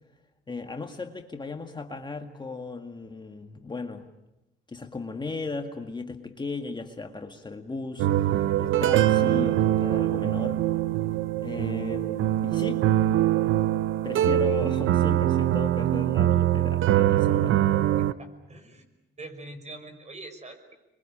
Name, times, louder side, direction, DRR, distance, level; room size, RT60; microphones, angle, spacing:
voice 1, 0.5-4.1 4.7-10.6 11.4-12.8 14.0-17.6, left 3 dB, 20° left, 5 dB, 1.9 m, -36 dB
sound 1, 8.0-18.1, right 13 dB, 80° right, 0.9 m, -23 dB
voice 2, 18.0-18.8 19.2-20.7, right 2 dB, 35° right, 7 dB, 5.8 m, -44 dB
28.0 x 22.5 x 8.7 m, 0.93 s
cardioid pair, 90°, 20 cm